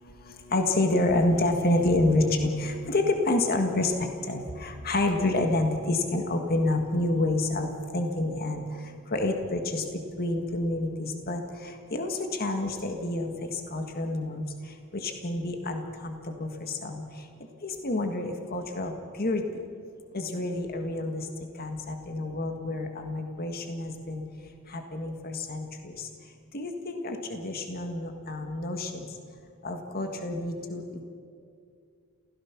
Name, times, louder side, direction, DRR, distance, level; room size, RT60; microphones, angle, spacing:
voice 1, 0.5-8.6 9.1-9.8 10.2-11.4 11.9-13.3 13.7-14.4 15.0-17.0 17.6-18.9 19.2-19.4 20.1-21.2 21.6-24.2 24.7-25.7 26.5-28.9 29.6-31.0, left 2 dB, 45° left, 5 dB, 1.7 m, -28 dB
28.0 x 16.5 x 6.0 m, 2.3 s
head